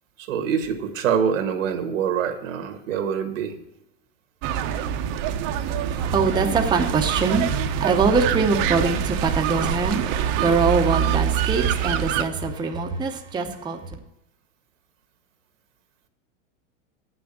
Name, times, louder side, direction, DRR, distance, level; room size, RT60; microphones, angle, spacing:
voice 1, 0.2-3.6, right 7 dB, 85° right, 1.8 m, -25 dB
sound 1, 4.4-12.2, right 9 dB, 45° right, 0.8 m, -25 dB
voice 2, 5.6-14.0, right 4 dB, 10° right, 0.7 m, -23 dB
8.3 x 6.2 x 7.2 m
supercardioid pair, 140°, 38 cm